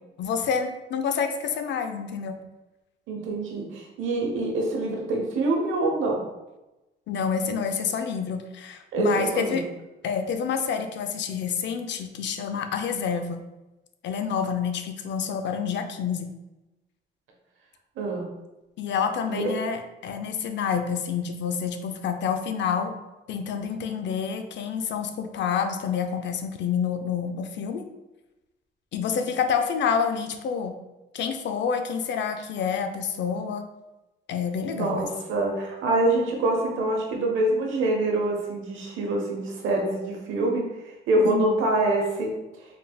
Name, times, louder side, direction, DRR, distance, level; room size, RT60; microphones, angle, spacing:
voice 1, 0.2-2.4 7.1-9.6 10.0-13.4 14.0-16.3 18.8-22.9 23.3-27.8 28.9-30.7 31.1-33.6 34.3-35.1 41.2-41.5, left 6 dB, 65° left, 6 dB, 0.5 m, -28 dB
voice 2, 3.1-6.2 8.9-9.6 18.0-18.3 19.3-19.4 34.7-40.6 41.1-42.3, right 2 dB, 85° right, 1 dB, 0.9 m, -25 dB
4.0 x 3.3 x 2.3 m, 1.0 s
cardioid pair, 90°, 20 cm